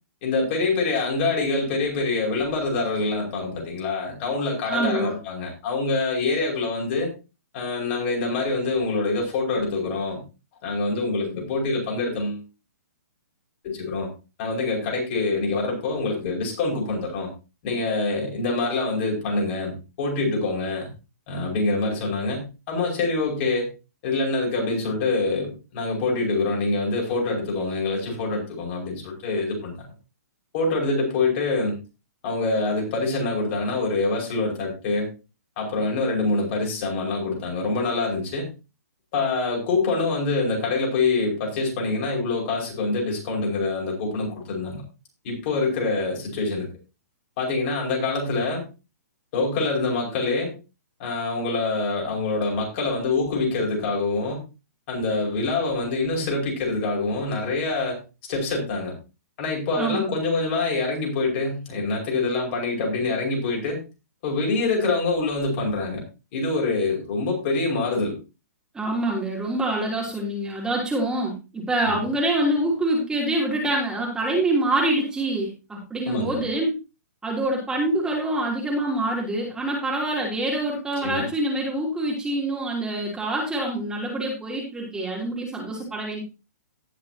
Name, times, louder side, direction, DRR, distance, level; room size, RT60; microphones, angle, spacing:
voice 1, 0.2-7.1 7.5-10.2 10.6-12.4 13.6-14.1 14.4-17.3 17.6-20.9 21.3-23.7 24.0-29.8 30.5-31.8 32.2-35.1 35.6-38.5 39.1-44.8 45.2-46.7 47.4-48.6 49.3-50.5 51.0-54.4 54.9-58.0 58.3-58.9 59.4-63.8 64.2-66.0 66.3-68.2 71.9-72.0 76.1-76.4 81.0-81.2, left 3 dB, 45° left, -1 dB, 5.7 m, -25 dB
voice 2, 4.6-5.2 59.8-60.1 68.7-76.7 77.2-86.2, right 1 dB, 10° right, -3 dB, 3.2 m, -25 dB
18.5 x 6.5 x 2.9 m, 0.29 s
hypercardioid pair, 135°, 9 cm